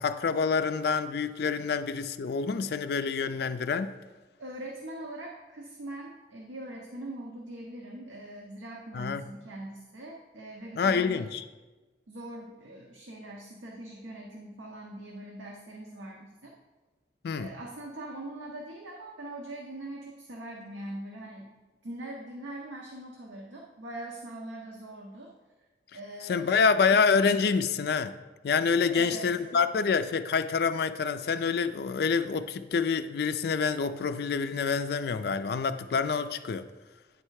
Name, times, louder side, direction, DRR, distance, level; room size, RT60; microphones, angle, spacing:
voice 1, 0.0-3.9 8.9-9.2 10.8-11.4 17.2-17.5 26.2-28.1 28.4-36.7, left 5 dB, 55° left, 11 dB, 0.3 m, -27 dB
voice 2, 4.4-11.3 12.1-16.5 17.3-21.5 21.8-25.3 25.9-26.7 28.8-29.6, right 1 dB, 85° right, -1 dB, 0.8 m, -42 dB
9.3 x 3.3 x 4.7 m, 1.2 s
head